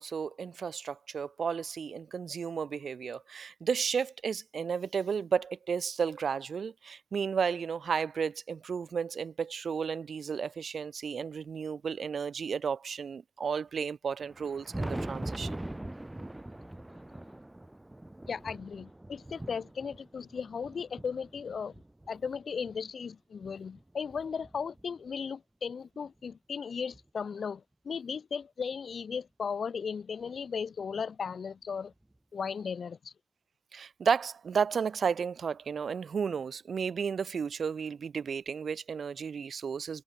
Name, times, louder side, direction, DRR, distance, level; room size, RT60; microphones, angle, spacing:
voice 1, 0.0-15.6 33.7-40.0, right 6 dB, 90° right, 2.4 m, -33 dB
Thunder, 14.2-22.8 23.4-25.1 26.3-26.4 26.9-27.0 28.9-29.0 30.4-30.5 32.0-32.1, right 1 dB, 15° right, 3.5 m, -42 dB
voice 2, 18.3-21.8 22.1-31.9 32.3-33.1, left 6 dB, 85° left, 6.5 m, -36 dB
wide cardioid pair, 80°, 0 cm